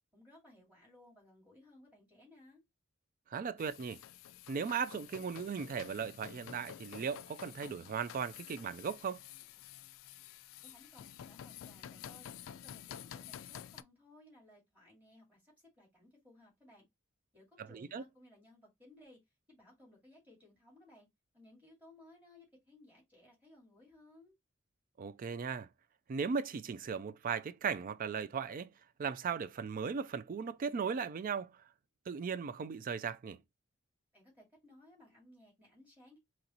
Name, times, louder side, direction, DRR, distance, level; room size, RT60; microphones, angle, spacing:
voice 1, 0.1-2.6 10.6-12.3 12.6-16.8 17.3-19.2 19.5-21.1 21.3-24.4 34.1-36.2, left 1 dB, 10° right, 2.1 m, -61 dB
voice 2, 3.3-4.0 4.5-9.2 17.6-18.0 25.0-25.7 26.1-28.7 29.0-31.6 32.1-33.4, right 6 dB, 45° right, 0.3 m, -37 dB
sound 1, 3.6-13.8, left 10 dB, 75° left, 0.3 m, -50 dB
3.9 x 3.0 x 2.9 m
head